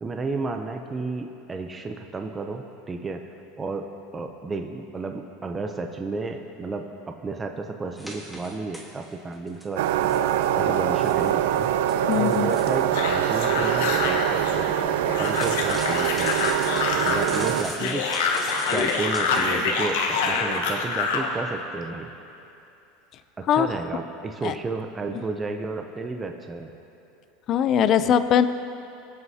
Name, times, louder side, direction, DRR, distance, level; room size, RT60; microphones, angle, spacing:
voice 1, 0.0-3.2 3.6-10.1 10.6-11.7 12.1-14.7 15.0-16.5 17.0-18.1 18.7-22.1 23.4-26.7, right 3 dB, 15° right, 4 dB, 0.6 m, -32 dB
sound 1, 8.0-9.1 9.5-12.9 15.2-19.5, equal, ahead, 1.4 m, -40 dB
sound 2, 9.8-17.6, right 10 dB, 80° right, 0.4 m, -24 dB
voice 2, 12.1-12.5 23.5-23.7 24.4-24.5 27.5-28.5, left 9 dB, 35° left, 12 dB, 0.4 m, -20 dB
sound 3, 12.9-21.3, left 4 dB, 85° left, 1.2 m, -26 dB
23.0 x 8.0 x 2.8 m, 2.8 s
supercardioid pair, 145°, 0 cm